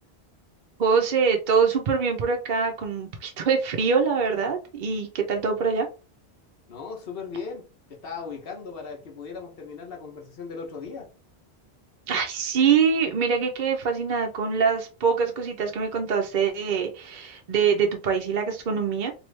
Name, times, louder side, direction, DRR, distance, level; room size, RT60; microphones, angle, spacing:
voice 1, 0.8-5.9 12.1-19.1, right 6 dB, 55° right, 0.7 m, -24 dB
voice 2, 6.7-11.1, left 5 dB, 65° left, 1.1 m, -37 dB
3.0 x 2.6 x 3.1 m
omnidirectional pair, 1.1 m